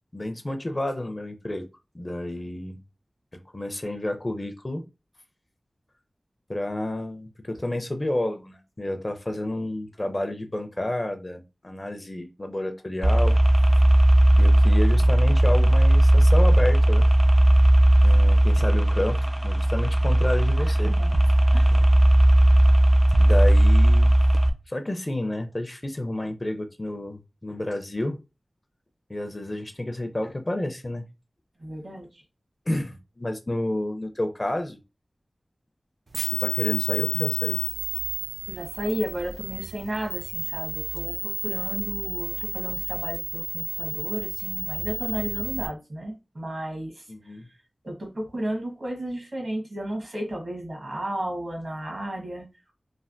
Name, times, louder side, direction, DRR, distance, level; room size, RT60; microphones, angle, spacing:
voice 1, 0.1-1.7 1.9-2.8 3.3-4.8 6.5-13.4 14.4-17.1 18.0-20.9 21.7-21.9 23.2-24.2 24.7-28.2 29.1-31.1 32.7-34.8 36.4-37.6 47.1-47.5, left 1 dB, 35° left, 0.5 m, -30 dB
sound 1, 13.0-24.5, right 1 dB, 30° right, 0.5 m, -17 dB
voice 2, 20.6-21.1 21.5-21.8 31.6-32.2 38.5-47.4 47.8-52.5, right 1 dB, 65° right, 1.2 m, -33 dB
sound 2, 36.1-45.7, right 2 dB, 85° right, 0.4 m, -31 dB
3.2 x 2.2 x 2.5 m
wide cardioid pair, 55°, 0 cm